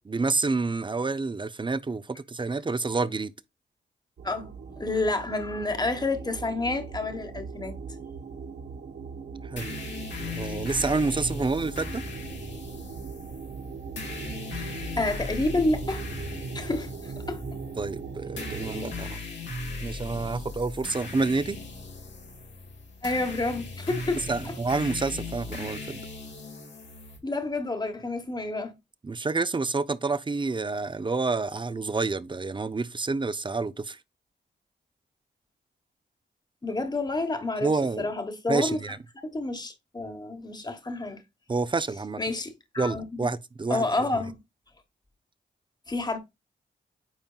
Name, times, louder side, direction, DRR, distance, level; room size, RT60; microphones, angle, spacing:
voice 1, 0.0-3.3 9.4-9.7 10.2-12.0 17.8-19.2 19.8-21.6 24.3-26.1 29.0-34.0 37.6-38.1 38.5-39.0 41.5-42.2 42.8-43.8, right 3 dB, 25° right, 0.6 m, -28 dB
voice 2, 4.2-7.7 14.6-14.7 15.0-16.0 16.5-17.4 23.0-24.5 27.2-28.7 36.6-37.7 38.0-38.8 39.2-41.2 42.2-43.3 43.7-44.4 45.9-46.2, left 2 dB, 20° left, 1.3 m, -29 dB
sound 1, 4.2-18.9, right 5 dB, 65° right, 1.1 m, -39 dB
sound 2, 9.6-27.2, left 3 dB, 85° left, 2.4 m, -38 dB
8.9 x 4.4 x 2.4 m
cardioid pair, 60°, 18 cm